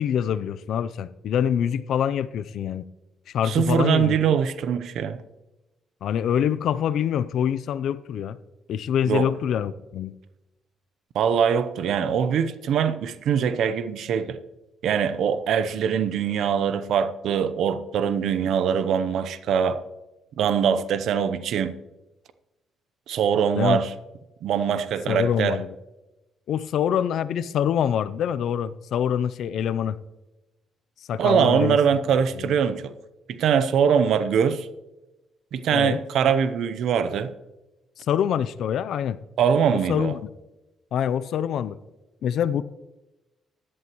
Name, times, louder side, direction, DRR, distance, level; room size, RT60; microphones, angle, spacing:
voice 1, 0.0-2.8 3.3-4.2 6.0-8.4 8.7-10.1 23.6-23.8 25.1-25.8 26.5-30.0 31.1-31.8 32.4-32.5 35.7-36.0 38.0-39.2 39.7-40.2 40.9-41.8 42.2-42.6, left 9 dB, 75° left, 0.5 m, -25 dB
voice 2, 3.4-5.2 9.1-9.3 11.1-14.4 14.8-19.8 20.4-21.7 23.1-23.9 24.4-25.6 31.2-32.9 33.3-34.7 35.5-37.3 39.4-40.1, right 7 dB, 75° right, 0.7 m, -22 dB
15.0 x 11.0 x 3.0 m
cardioid pair, 90°, 0 cm